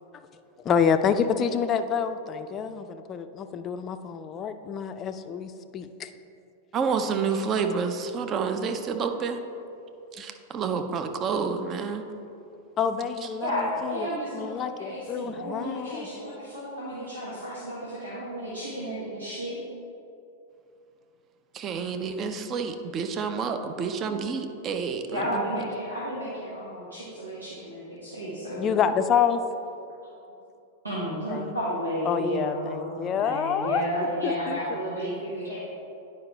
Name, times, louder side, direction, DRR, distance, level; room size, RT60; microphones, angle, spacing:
voice 1, 0.6-6.1 12.8-14.1 14.3-16.1 28.6-29.4 31.3-31.5 32.1-33.8 34.2-34.6, left 7 dB, 30° left, 10 dB, 0.4 m, -27 dB
voice 2, 6.7-9.4 10.1-12.1 21.5-25.6, right 5 dB, 30° right, 6 dB, 0.6 m, -29 dB
voice 3, 13.4-19.6 24.0-24.1 25.1-28.9 30.8-35.6, equal, 90° right, -8 dB, 1.3 m, -32 dB
9.7 x 5.1 x 3.3 m, 2.7 s
figure-of-eight pair, 95°, 0 cm